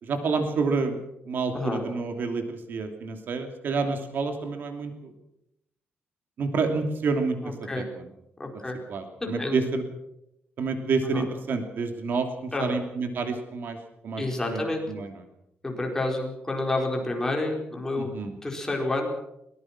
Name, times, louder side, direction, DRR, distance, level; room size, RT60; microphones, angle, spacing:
voice 1, 0.0-1.0 1.3-5.1 6.4-7.8 8.9-9.8 10.6-13.8 14.0-14.2 14.5-14.6 14.9-15.1 18.0-18.3, right 4 dB, 55° right, 6 dB, 2.8 m, -28 dB
voice 2, 7.4-7.9 8.4-8.8 9.2-9.6 11.1-11.2 12.5-12.8 14.2-14.8 15.6-18.1 18.4-19.1, left 2 dB, 15° left, 1 dB, 4.6 m, -29 dB
22.5 x 20.0 x 6.1 m, 0.81 s
wide cardioid pair, 160°, 4 cm